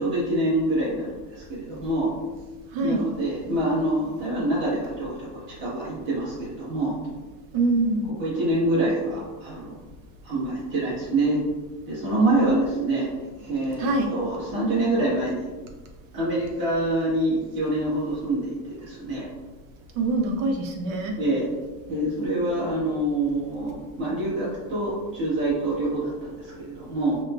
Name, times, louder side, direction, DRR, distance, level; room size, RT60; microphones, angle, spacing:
voice 1, 0.0-2.1 2.8-6.9 8.2-9.7 10.2-11.4 11.9-13.1 13.3-15.5 16.1-19.3 21.2-21.5 21.9-27.2, right 1 dB, 25° right, -8 dB, 1.5 m, -26 dB
voice 2, 7.5-8.1 12.1-13.0 13.8-14.1 20.0-21.1, right 2 dB, 55° right, 3 dB, 0.7 m, -24 dB
5.0 x 2.3 x 2.4 m, 1.2 s
cardioid pair, 160°, 46 cm